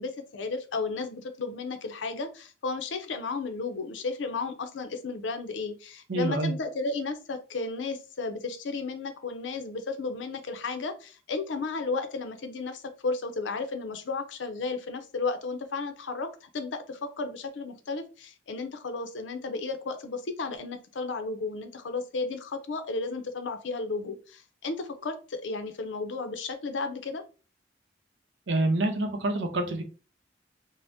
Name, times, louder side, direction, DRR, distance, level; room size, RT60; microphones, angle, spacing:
voice 1, 0.0-27.2, left 3 dB, 85° left, 8 dB, 0.5 m, -33 dB
voice 2, 6.1-6.5 28.5-29.8, right 2 dB, 75° right, 6 dB, 0.6 m, -27 dB
2.6 x 2.1 x 3.3 m, 0.35 s
head